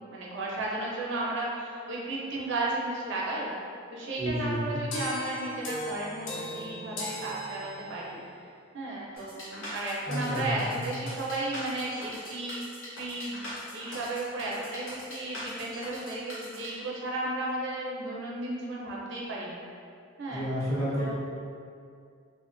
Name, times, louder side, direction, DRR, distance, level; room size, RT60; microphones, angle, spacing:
voice 1, 0.0-3.5 3.9-8.2 8.7-12.6 13.0-13.4 13.7-19.6 20.2-20.5 20.9-21.1, right 2 dB, 65° right, -4 dB, 0.4 m, -34 dB
voice 2, 4.2-4.9 10.1-10.9 20.3-21.1, equal, 15° left, -10 dB, 0.6 m, -31 dB
sound 1, 4.9-8.2, left 1 dB, 65° left, 0.4 m, -37 dB
sound 2, 9.2-16.7, left 1 dB, 90° left, 0.8 m, -42 dB
2.3 x 2.2 x 2.5 m, 2.3 s
head